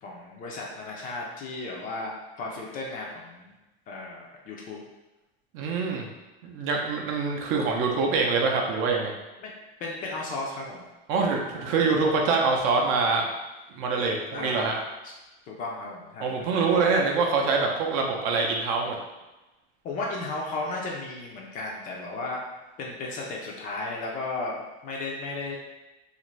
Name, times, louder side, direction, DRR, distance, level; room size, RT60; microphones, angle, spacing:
voice 1, 0.0-3.5 3.9-4.8 9.4-9.5 9.8-10.8 11.5-11.8 14.3-14.7 15.0-15.1 15.5-16.8 19.8-22.4 22.8-25.6, left 2 dB, 30° left, -2 dB, 0.4 m, -35 dB
voice 2, 5.5-6.1 6.4-9.1 11.1-13.3 13.7-14.7 16.2-19.0, right 4 dB, 45° right, 1 dB, 0.5 m, -25 dB
2.5 x 2.5 x 3.0 m, 1.1 s
supercardioid pair, 155°, 29 cm